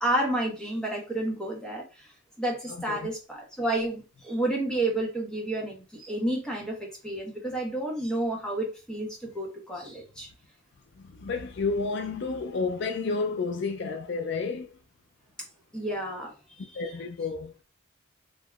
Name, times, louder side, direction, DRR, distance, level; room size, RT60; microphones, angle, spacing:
voice 1, 0.0-10.3 15.7-16.9, right 1 dB, 5° left, 1.2 m, -31 dB
voice 2, 11.0-14.7 16.7-17.5, left 4 dB, 60° left, 0.4 m, -31 dB
3.6 x 3.0 x 2.3 m
head